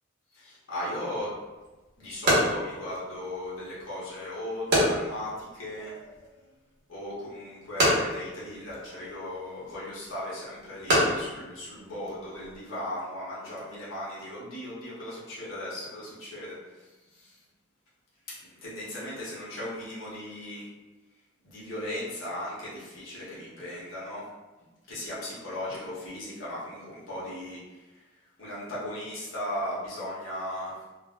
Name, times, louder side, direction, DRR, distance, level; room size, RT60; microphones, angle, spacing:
voice 1, 0.3-1.3 2.0-5.9 6.9-17.4 18.3-20.7 21.4-24.2 24.9-28.0 28.4-30.9, left 1 dB, 70° left, -8 dB, 0.9 m, -37 dB
sound 1, 1.2-12.6, equal, 55° right, 1.0 m, -30 dB
3.9 x 2.0 x 2.2 m, 1.2 s
head